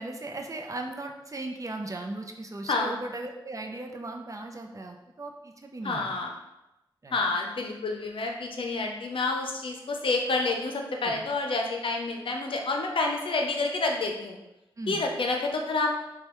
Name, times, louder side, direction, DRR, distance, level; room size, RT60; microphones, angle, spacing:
voice 1, 0.0-6.1 7.0-7.2 11.0-11.2 14.8-15.1, right 2 dB, 40° right, 3 dB, 0.6 m, -37 dB
voice 2, 2.7-3.0 5.8-6.3 7.1-14.4 14.9-15.9, left 3 dB, 75° left, 2 dB, 0.6 m, -28 dB
5.3 x 2.3 x 3.0 m, 0.95 s
cardioid pair, 40°, 9 cm